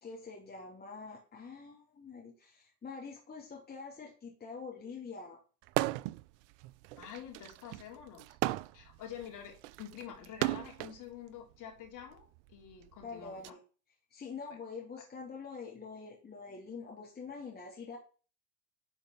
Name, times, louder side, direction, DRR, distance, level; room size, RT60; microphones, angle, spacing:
voice 1, 0.0-5.4 13.0-13.6 14.1-18.0, left 5 dB, 20° left, -2 dB, 2.9 m, -45 dB
sound 1, 5.7-6.2 6.6-11.0 11.9-13.5, right 18 dB, 50° right, 0.5 m, -36 dB
voice 2, 7.0-8.4 8.7-13.5, left 9 dB, 40° left, 1 dB, 3.8 m, -48 dB
11.0 x 5.1 x 5.7 m, 0.37 s
hypercardioid pair, 95°, 46 cm